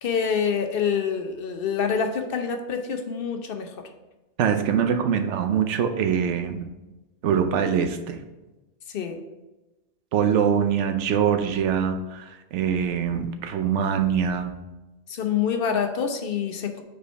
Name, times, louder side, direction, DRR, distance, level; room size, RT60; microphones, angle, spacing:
voice 1, 0.0-3.8 8.9-9.2 15.1-16.8, left 6 dB, 55° left, 6 dB, 0.8 m, -26 dB
voice 2, 4.4-6.7 7.2-8.2 10.1-14.5, right 7 dB, 85° right, 7 dB, 0.9 m, -23 dB
5.1 x 4.6 x 4.5 m, 1.1 s
omnidirectional pair, 1.2 m